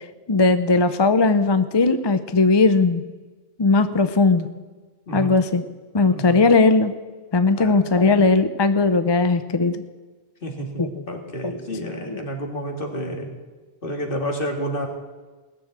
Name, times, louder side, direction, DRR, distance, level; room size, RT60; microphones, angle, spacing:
voice 1, 0.3-3.0 3.6-4.5 5.1-5.6 5.9-6.9 7.3-9.8 10.8-11.0 11.4-11.5 12.1-12.3, left 3 dB, 30° left, 10 dB, 0.5 m, -18 dB
voice 2, 6.1-6.4 7.5-7.9 10.4-13.3 13.8-14.9, equal, 55° left, 2 dB, 2.4 m, -30 dB
18.0 x 7.0 x 8.7 m, 1.3 s
omnidirectional pair, 1.1 m